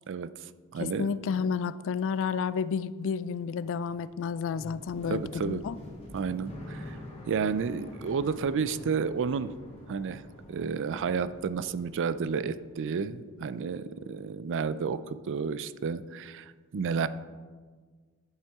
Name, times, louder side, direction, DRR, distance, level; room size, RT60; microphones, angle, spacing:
voice 1, 0.1-1.1 5.1-5.6 6.1-7.0 7.3-9.5 9.9-10.2 10.5-17.1, right 5 dB, 55° right, 15 dB, 0.4 m, -31 dB
voice 2, 0.8-5.8, left 6 dB, 60° left, 17 dB, 0.3 m, -31 dB
sound 1, 3.2-13.2 13.4-14.3, left 1 dB, 30° left, 2.3 m, -47 dB
11.0 x 7.5 x 3.6 m, 1.5 s
head